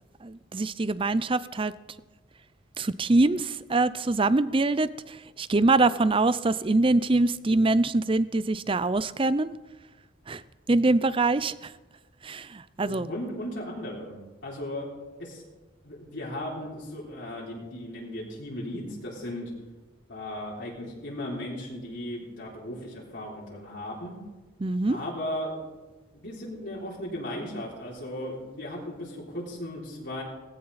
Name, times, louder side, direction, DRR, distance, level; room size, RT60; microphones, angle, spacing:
voice 1, 0.2-1.7 2.8-9.5 10.3-10.4 10.7-11.7 12.2-13.1 24.6-25.0, right 2 dB, 25° right, 16 dB, 0.5 m, -24 dB
voice 2, 12.9-14.9 15.2-15.4 15.8-19.5 20.1-24.2 24.9-25.6 26.1-30.2, left 1 dB, 60° left, -5 dB, 3.8 m, -36 dB
18.5 x 16.5 x 4.2 m, 1.2 s
head